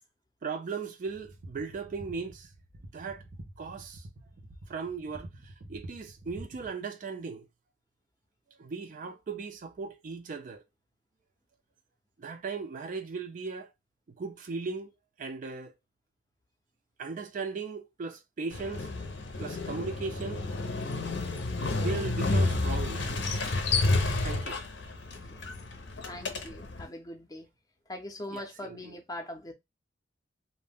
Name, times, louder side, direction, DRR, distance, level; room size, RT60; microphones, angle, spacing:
voice 1, 0.4-2.5 2.9-3.2 3.6-4.1 4.7-7.5 8.6-10.6 12.2-13.7 14.2-14.9 15.2-15.7 17.0-18.9 19.4-20.5 21.8-23.4 24.2-24.6 28.3-29.0, right 4 dB, 45° right, 0.4 m, -37 dB
sound 1, 1.0-6.7, right 1 dB, 85° right, 0.8 m, -48 dB
Motorcycle, 18.5-26.9, left 2 dB, 70° left, 0.6 m, -30 dB
voice 2, 26.0-27.5 27.9-29.5, left 1 dB, 20° left, 0.5 m, -41 dB
2.6 x 2.1 x 3.3 m
head